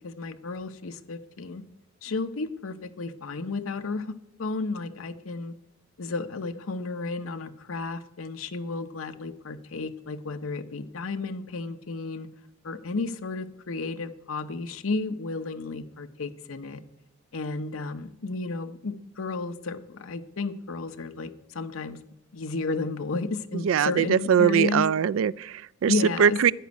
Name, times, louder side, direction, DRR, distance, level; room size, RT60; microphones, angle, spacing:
voice 1, 0.0-1.6 2.0-5.5 6.0-12.3 12.6-16.8 17.3-22.0 22.3-24.9 25.9-26.5, left 3 dB, 85° left, 0.8 m, -32 dB
voice 2, 23.5-25.9 26.2-26.5, right 8 dB, 70° right, 0.3 m, -22 dB
15.0 x 5.2 x 9.4 m
head